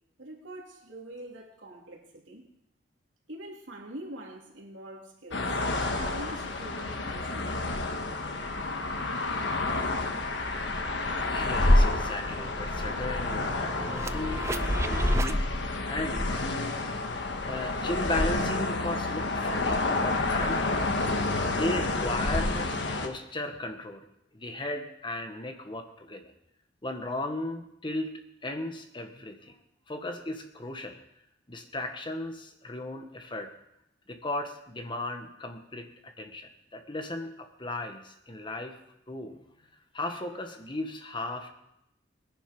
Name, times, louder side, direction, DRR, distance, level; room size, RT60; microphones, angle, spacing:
voice 1, 0.2-2.4 3.3-7.6, right 1 dB, 85° right, -1 dB, 3.1 m, -44 dB
sound 1, 5.3-23.1, left 2 dB, 65° left, 1.5 m, -28 dB
sound 2, 9.9-10.0 10.4-15.4, right 2 dB, 15° right, 0.5 m, -37 dB
voice 2, 11.3-15.5 15.9-16.8 17.5-20.6 21.5-24.1 24.3-26.3 26.8-29.6 29.9-31.0 31.5-33.5 34.1-38.8 39.1-39.4 39.9-41.5, left 2 dB, 25° left, 5 dB, 1.4 m, -36 dB
20.0 x 10.5 x 5.3 m, 0.81 s
head